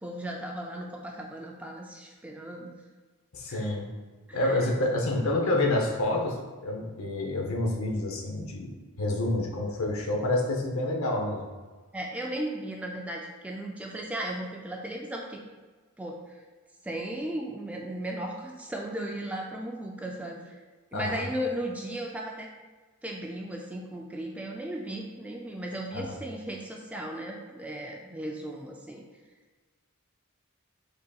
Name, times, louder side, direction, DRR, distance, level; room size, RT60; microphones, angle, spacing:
voice 1, 0.0-2.7 3.5-3.7 4.3-4.7 11.9-15.4 16.0-16.4 16.8-20.6 20.9-22.5 23.0-29.0, right 1 dB, 5° right, 0 dB, 0.3 m, -36 dB
voice 2, 3.3-3.9 4.3-11.5 20.9-21.3 25.9-26.0, left 2 dB, 65° left, 1 dB, 0.7 m, -28 dB
5.3 x 4.0 x 2.3 m, 1.4 s
head